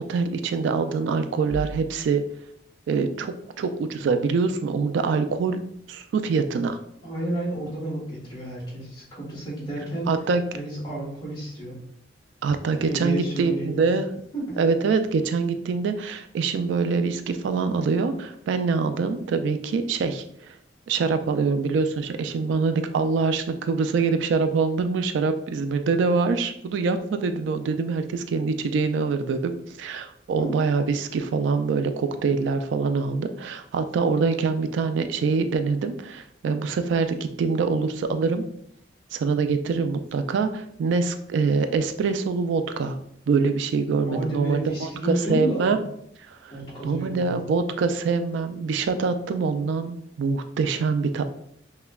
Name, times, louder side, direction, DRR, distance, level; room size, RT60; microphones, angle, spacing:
voice 1, 0.1-2.2 2.9-5.6 5.9-6.8 10.1-10.4 12.4-14.0 14.6-20.5 20.9-29.5 29.8-38.4 39.1-43.0 43.3-45.8 46.3-46.5 46.8-51.2, right 4 dB, 75° right, 8 dB, 0.3 m, -24 dB
sound 1, 1.5-2.5, equal, 70° left, 0.8 m, -36 dB
voice 2, 7.0-10.1 10.5-11.8 12.7-13.9 14.3-14.6 30.4-30.6 44.1-45.8 46.5-47.5, right 1 dB, 25° left, -5 dB, 1.3 m, -31 dB
5.7 x 2.1 x 2.2 m, 0.71 s
head